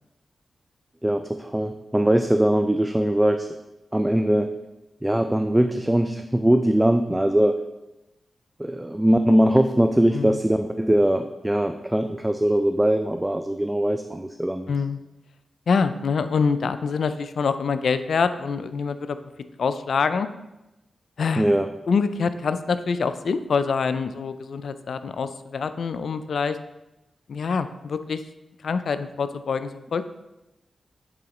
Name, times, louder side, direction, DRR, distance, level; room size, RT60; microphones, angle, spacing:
voice 1, 1.0-3.6 3.9-4.6 5.0-7.6 8.6-14.7 21.4-21.7, right 1 dB, 15° right, 7 dB, 0.4 m, -21 dB
voice 2, 14.7-15.0 15.7-19.2 19.6-20.3 21.2-21.5 21.9-26.6 27.3-28.2 28.6-30.1, left 5 dB, 75° left, 11 dB, 0.3 m, -25 dB
8.5 x 3.8 x 3.0 m, 0.98 s
cardioid pair, 45°, 0 cm